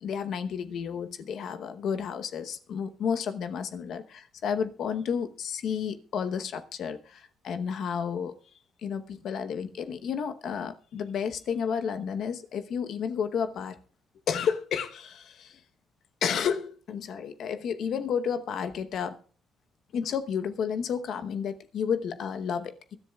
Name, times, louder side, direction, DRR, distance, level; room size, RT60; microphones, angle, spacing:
voice 1, 0.0-8.3 8.8-13.8 14.3-15.6 16.2-19.2 19.9-23.0, left 7 dB, 70° left, 9 dB, 0.9 m, -31 dB
23.5 x 10.5 x 2.3 m, 0.40 s
cardioid pair, 90°, 0 cm